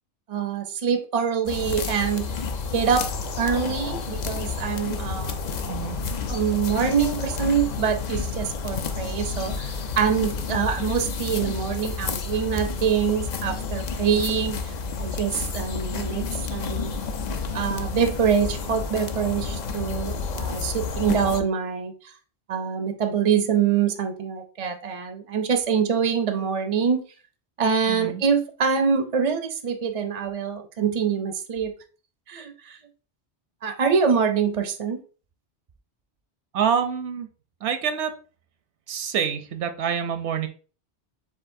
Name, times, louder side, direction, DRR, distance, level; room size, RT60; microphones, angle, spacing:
voice 1, 0.3-2.3 2.7-3.1 3.4-5.4 6.3-16.9 17.5-22.1 22.5-27.0 27.6-31.7 32.3-32.8 33.6-35.0, right 7 dB, 50° right, 6 dB, 0.4 m, -25 dB
sound 1, 1.5-21.4, left 4 dB, 55° left, 0.5 m, -30 dB
voice 2, 5.7-6.0 27.9-28.2 36.5-37.3 37.6-38.1 38.9-40.5, right 7 dB, 80° right, 9 dB, 0.9 m, -26 dB
7.4 x 2.5 x 2.5 m, 0.38 s
omnidirectional pair, 1.2 m